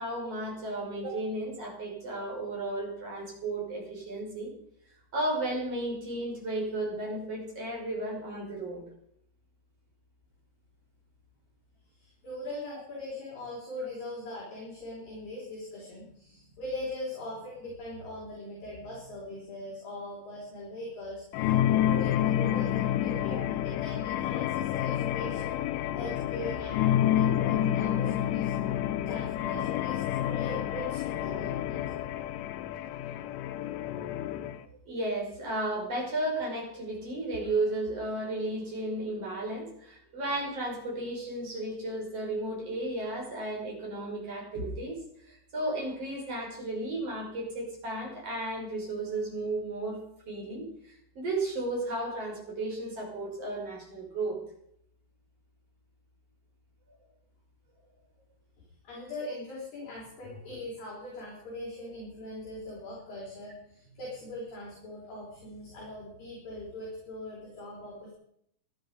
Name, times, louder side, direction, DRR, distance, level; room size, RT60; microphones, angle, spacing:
voice 1, 0.0-4.5 5.1-8.8 23.3-23.5 34.9-44.9 45.3-50.0 50.3-50.6 51.1-54.4, right 2 dB, 30° right, -2 dB, 6.5 m, -34 dB
voice 2, 12.0-23.4 23.6-25.6 25.9-28.5 29.1-31.9 58.6-68.1, left 1 dB, 45° left, -5 dB, 5.9 m, -41 dB
sound 1, 21.3-34.6, left 11 dB, 80° left, 3.2 m, -29 dB
19.0 x 12.0 x 5.3 m, 0.72 s
omnidirectional pair, 5.7 m